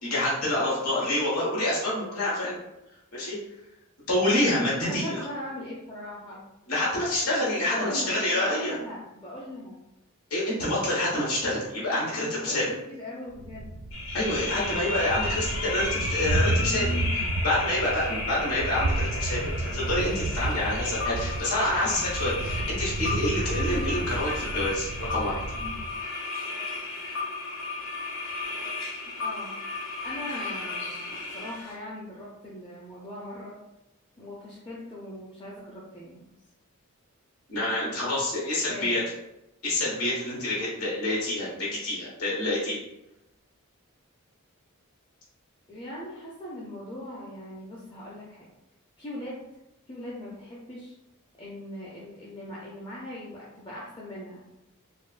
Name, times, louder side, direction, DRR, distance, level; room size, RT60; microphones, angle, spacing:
voice 1, 0.0-2.6 3.1-3.4 4.1-5.2 6.7-8.7 10.3-12.6 14.1-16.8 17.4-19.4 19.7-25.4 37.5-39.0 39.6-42.8, left 1 dB, 85° left, -6 dB, 1.3 m, -27 dB
voice 2, 4.8-6.4 7.6-9.8 11.9-12.6 12.9-13.7 16.6-17.5 25.5-25.8 29.2-29.6 30.0-33.6 34.2-36.3 38.7-39.0 45.7-48.5 49.0-49.4 49.9-50.9 51.4-54.4, left 1 dB, 20° left, -6 dB, 0.5 m, -39 dB
Thunder, 13.4-26.0, right 2 dB, 75° right, 0.4 m, -31 dB
sound 1, 13.9-31.8, left 3 dB, 60° left, 0.8 m, -34 dB
4.2 x 2.1 x 2.4 m, 0.92 s
head